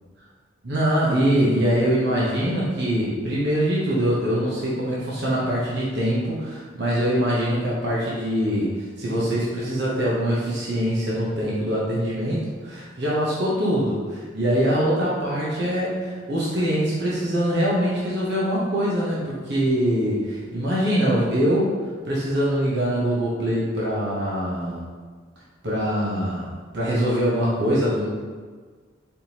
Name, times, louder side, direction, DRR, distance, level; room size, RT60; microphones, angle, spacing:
voice 1, 0.6-21.7 22.0-24.8 25.6-28.1, equal, 65° right, -7 dB, 0.9 m, -23 dB
4.4 x 3.5 x 2.8 m, 1.5 s
head